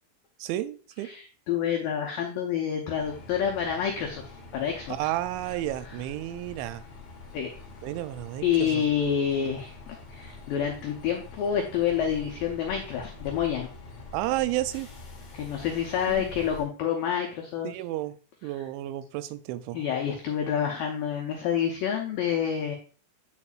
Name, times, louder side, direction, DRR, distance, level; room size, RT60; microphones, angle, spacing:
voice 1, 0.4-1.1 5.0-6.8 7.8-8.8 14.1-14.9 16.1-16.3 17.6-18.2 18.4-19.8, right 15 dB, 90° right, 12 dB, 2.9 m, -32 dB
voice 2, 1.1-4.2 4.5-4.9 7.3-7.5 8.4-13.7 15.3-17.7 19.7-22.8, left 8 dB, 85° left, 1 dB, 2.0 m, -28 dB
sound 1, 3.0-16.6, left 3 dB, 50° left, 1.8 m, -45 dB
9.8 x 4.6 x 2.4 m, 0.38 s
omnidirectional pair, 5.2 m